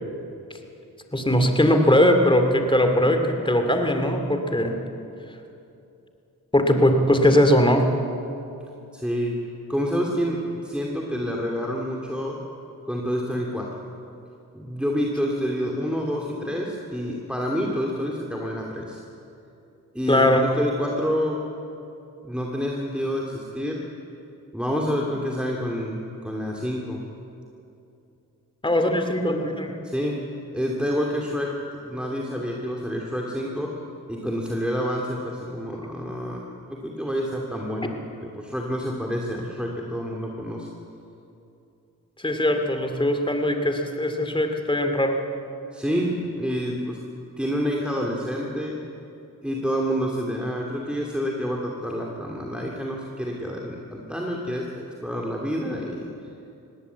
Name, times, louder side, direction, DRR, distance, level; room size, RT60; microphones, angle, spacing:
voice 1, 1.1-4.7 6.5-7.9 20.1-20.4 28.6-29.8 42.2-45.2, left 1 dB, 15° left, 5 dB, 2.6 m, -20 dB
voice 2, 8.9-9.4 9.7-12.4 12.8-13.7 14.5-19.0 19.9-21.4 22.2-23.8 24.5-27.0 29.8-30.2 30.5-31.5 31.8-33.7 34.1-38.0 38.3-40.7 45.7-47.0 47.4-48.7 49.4-56.1, equal, 5° right, -1 dB, 2.5 m, -28 dB
20.0 x 17.0 x 8.1 m, 2.8 s
cardioid pair, 60°, 35 cm